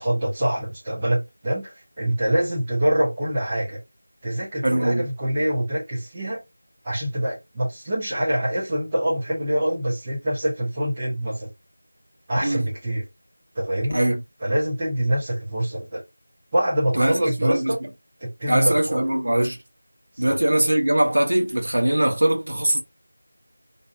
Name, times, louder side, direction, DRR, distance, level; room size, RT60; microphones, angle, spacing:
voice 1, 0.0-3.8 4.2-6.4 6.8-11.5 12.3-13.0 13.5-14.0 14.4-16.0 16.5-17.8 18.2-19.0 20.2-20.4, right 1 dB, 10° right, 0.6 m, -25 dB
voice 2, 4.6-5.1 12.4-12.7 13.9-14.2 16.9-17.7 18.5-19.6 20.2-22.8, right 1 dB, 55° right, 0.8 m, -21 dB
2.5 x 2.3 x 2.5 m
figure-of-eight pair, 180°, 0 cm